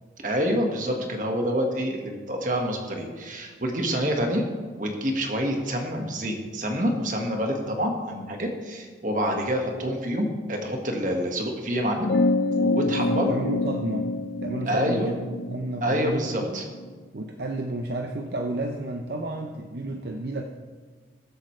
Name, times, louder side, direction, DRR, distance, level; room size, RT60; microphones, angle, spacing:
voice 1, 0.2-4.5 4.8-12.1 12.5-13.4 14.7-15.2 15.8-16.7, equal, 45° right, 2 dB, 1.7 m, -27 dB
sound 1, 12.0-16.9, left 2 dB, 75° left, 0.5 m, -27 dB
voice 2, 12.8-14.1 14.4-16.6 17.1-20.4, right 1 dB, 60° right, 4 dB, 0.7 m, -31 dB
21.0 x 8.0 x 3.3 m, 1.5 s
head